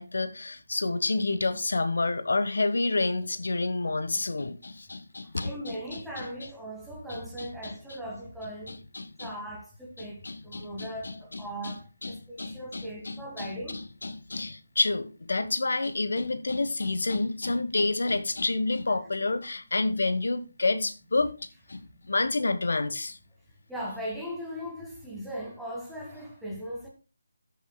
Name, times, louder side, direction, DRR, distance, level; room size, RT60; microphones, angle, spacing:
voice 1, 0.0-6.3 7.1-8.0 8.7-9.3 10.0-21.3 21.7-23.2, left 3 dB, 75° left, 1.2 m, -29 dB
voice 2, 5.4-8.8 9.2-10.2 10.4-11.8 12.1-13.8 23.7-26.9, equal, ahead, 1.6 m, -38 dB
13.5 x 6.9 x 2.2 m
figure-of-eight pair, 170°, 0 cm